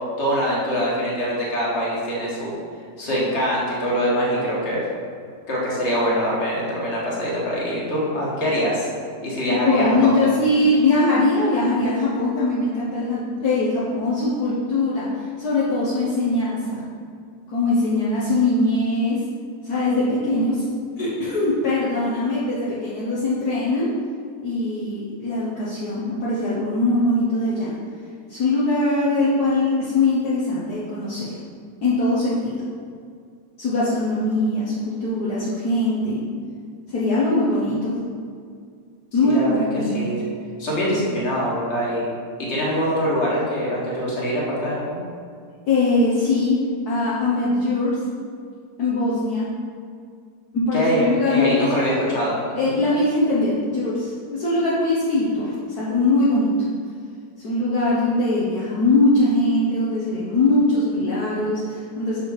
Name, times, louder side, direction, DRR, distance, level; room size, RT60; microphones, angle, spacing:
voice 1, 0.2-2.5 3.0-4.8 5.5-8.9 9.2-10.1 39.2-39.5 39.9-40.2 40.6-42.1 42.4-45.0 50.7-52.4 52.7-52.8, equal, 40° left, -6 dB, 1.9 m, -23 dB
voice 2, 9.5-16.8 17.5-19.2 19.6-20.6 21.0-23.9 24.4-27.7 28.3-31.3 31.8-32.6 33.6-36.2 36.9-38.0 39.1-40.1 45.7-46.6 46.8-47.9 48.8-49.5 50.5-51.7 52.5-56.5 57.4-62.2, left 2 dB, 60° left, -8 dB, 1.5 m, -21 dB
6.2 x 5.4 x 4.8 m, 2.2 s
omnidirectional pair, 1.9 m